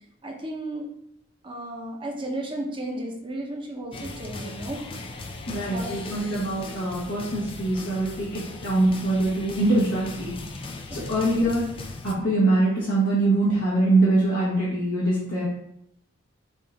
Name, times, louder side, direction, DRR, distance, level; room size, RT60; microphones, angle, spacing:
voice 1, 0.2-0.9 1.4-4.8 5.5-6.3 10.9-11.2, right 1 dB, 25° right, 0 dB, 0.7 m, -34 dB
sound 1, 3.9-12.1, left 3 dB, 25° left, 0.3 m, -38 dB
voice 2, 5.5-10.3 10.9-11.7 12.0-15.5, right 2 dB, 65° left, -7 dB, 1.1 m, -23 dB
5.4 x 2.5 x 3.3 m, 0.77 s
head